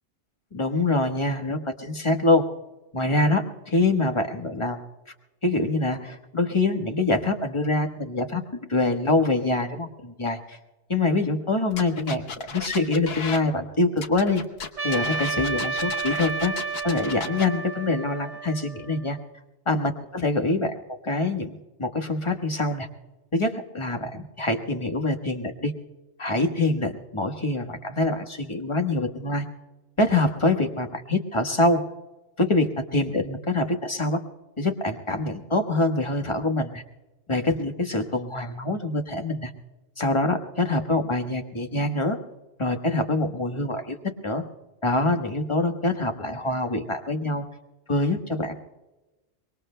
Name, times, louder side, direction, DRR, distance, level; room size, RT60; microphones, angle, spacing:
voice 1, 0.5-2.5 2.9-4.8 5.4-8.4 8.7-10.6 10.9-14.4 14.8-16.6 16.8-19.2 19.7-20.7 21.0-22.9 23.3-25.7 26.2-29.4 30.0-31.8 32.4-34.2 34.6-36.8 37.3-39.5 40.0-42.2 42.6-44.0 44.2-44.4 44.8-47.4 47.9-48.5, left 2 dB, 25° left, 4 dB, 1.3 m, -25 dB
sound 1, 11.7-13.4 14.0-17.5, left 5 dB, 55° left, 1.2 m, -35 dB
Trumpet, 14.8-19.2, right 4 dB, 75° right, 1.8 m, -31 dB
24.5 x 22.0 x 2.2 m, 1.1 s
omnidirectional pair, 1.3 m